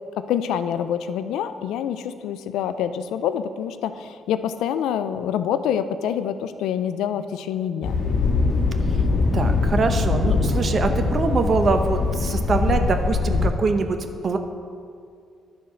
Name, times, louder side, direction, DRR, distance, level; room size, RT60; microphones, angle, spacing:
voice 1, 0.1-7.9, left 9 dB, 90° left, 11 dB, 0.4 m, -26 dB
Thunder, 7.8-13.5, left 4 dB, 65° left, 1.8 m, -22 dB
voice 2, 9.3-14.0 14.2-14.4, right 4 dB, 45° right, 7 dB, 0.8 m, -23 dB
10.5 x 4.4 x 6.3 m, 2.3 s
cardioid pair, 90°, 0 cm